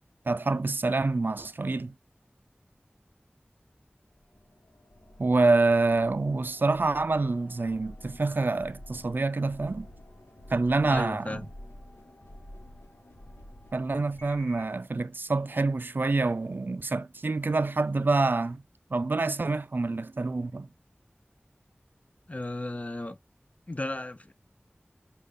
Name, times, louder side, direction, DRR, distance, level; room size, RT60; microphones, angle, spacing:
voice 1, 0.3-1.9 5.2-9.9 10.5-11.4 13.7-18.6 18.9-20.7, right 3 dB, 60° right, 0.3 m, -26 dB
sound 1, 4.2-14.8, left 1 dB, 80° left, 1.0 m, -50 dB
voice 2, 10.9-11.5 22.3-23.2 23.7-24.3, left 2 dB, 35° left, 0.5 m, -34 dB
5.1 x 2.4 x 3.4 m
wide cardioid pair, 45°, 4 cm